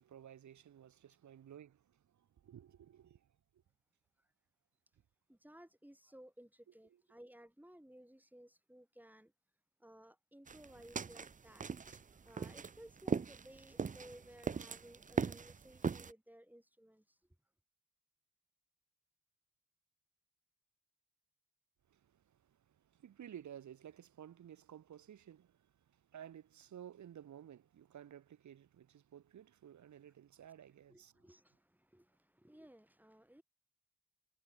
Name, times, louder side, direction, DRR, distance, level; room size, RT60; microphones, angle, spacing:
voice 1, 0.0-3.3 21.9-31.1, right 10 dB, 70° right, 0.7 m, -55 dB
voice 2, 5.3-9.3 9.8-17.2 30.9-33.4, equal, 5° right, 4.2 m, -59 dB
sound 1, 10.5-16.1, right 5 dB, 25° right, 0.4 m, -39 dB
wide cardioid pair, 100°, 30 cm